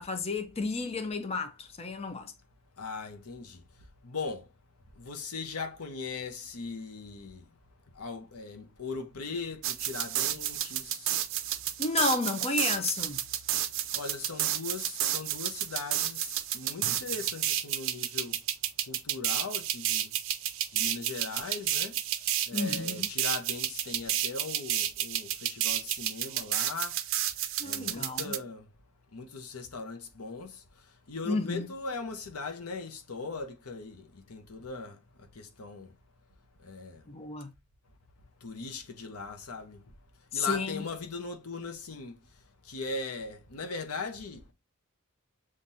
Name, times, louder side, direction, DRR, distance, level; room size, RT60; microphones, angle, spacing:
voice 1, 0.0-2.3 11.8-13.2 22.5-23.1 27.6-28.3 31.3-31.7 37.1-37.5 40.3-40.8, left 3 dB, 30° left, 0.6 m, -32 dB
voice 2, 2.8-3.6 4.0-4.5 5.0-7.4 7.9-11.1 13.9-18.4 18.9-20.1 20.7-22.0 22.5-27.0 27.6-28.7 29.1-35.9 36.6-37.1 38.4-39.8 40.3-42.2 42.6-44.5, left 4 dB, 90° left, 0.9 m, -39 dB
sound 1, 9.6-28.4, right 11 dB, 60° right, 0.5 m, -31 dB
7.3 x 2.5 x 2.6 m
head